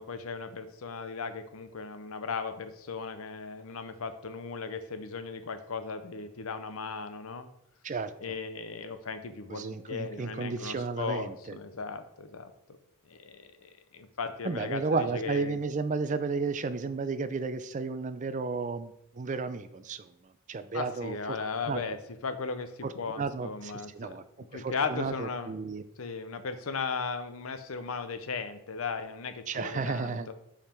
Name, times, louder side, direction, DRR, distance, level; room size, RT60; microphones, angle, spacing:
voice 1, 0.0-7.5 8.2-12.5 13.1-15.6 20.7-22.0 22.2-24.1 24.5-25.6 26.0-30.3, left 4 dB, 75° left, 10 dB, 0.7 m, -37 dB
voice 2, 7.8-8.4 9.5-11.6 14.4-21.4 21.7-22.0 22.8-24.2 24.5-25.8 29.5-30.3, right 4 dB, 35° right, 11 dB, 0.4 m, -33 dB
5.4 x 4.9 x 4.4 m, 0.78 s
head